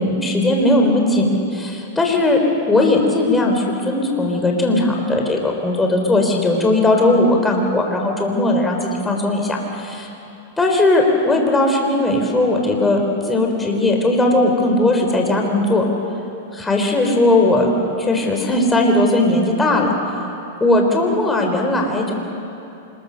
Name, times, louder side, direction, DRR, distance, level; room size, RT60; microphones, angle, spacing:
voice 1, 0.0-2.4 2.7-10.1 10.6-15.8 16.6-17.7 18.0-19.9 20.6-22.1, left 2 dB, 10° left, 1 dB, 4.2 m, -18 dB
26.0 x 22.0 x 6.7 m, 2.8 s
hypercardioid pair, 120°, 0 cm